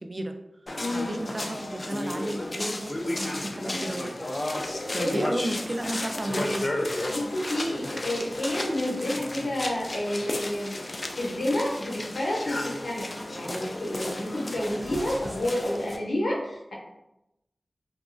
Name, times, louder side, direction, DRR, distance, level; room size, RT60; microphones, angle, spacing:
voice 1, 0.0-0.4 0.9-4.3 4.9-6.7, right 1 dB, 40° right, 5 dB, 0.3 m, -33 dB
sound 1, 0.7-16.0, left 1 dB, 45° left, 0.3 m, -33 dB
voice 2, 0.8-1.1 4.7-5.2 7.1-16.7, left 1 dB, 90° left, -3 dB, 0.7 m, -30 dB
2.8 x 2.3 x 2.5 m, 0.90 s
wide cardioid pair, 60°, 0 cm